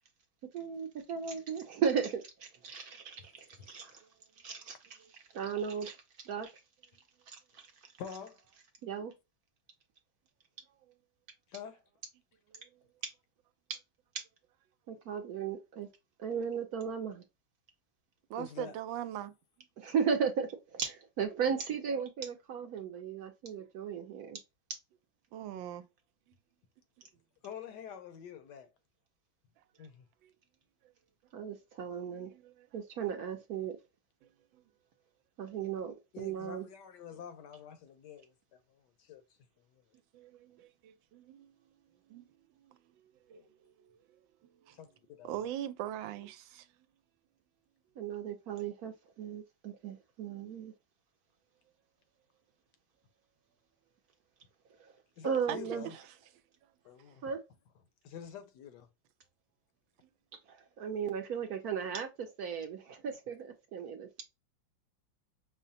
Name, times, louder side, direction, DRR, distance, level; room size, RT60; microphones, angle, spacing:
voice 1, 0.5-4.0 4.4-4.8 5.3-6.0 6.2-6.5 7.3-7.6 8.8-9.1 14.9-15.9 16.2-17.2 19.8-24.4 31.3-32.3 32.7-33.8 35.4-36.6 48.0-50.7 54.8-54.9 55.2-55.9 57.2-57.4 60.5-64.2, right 7 dB, 65° right, 0.9 m, -36 dB
voice 2, 3.3-3.9 8.0-8.4 11.5-11.8 18.4-18.8 27.4-28.7 29.8-30.1 36.1-39.2 39.7-39.8 43.3-43.5 44.7-45.3 55.2-55.9 56.8-57.2 58.0-58.9, left 7 dB, 75° left, 1.1 m, -47 dB
voice 3, 18.3-19.3 25.3-25.8 27.0-27.1 30.2-30.3 32.1-32.5 34.5-34.6 40.1-41.5 42.1-42.2 42.7-44.8 45.2-46.7 55.5-55.6 55.8-56.0, right 11 dB, 85° right, 1.3 m, -42 dB
5.5 x 2.1 x 2.6 m
omnidirectional pair, 2.1 m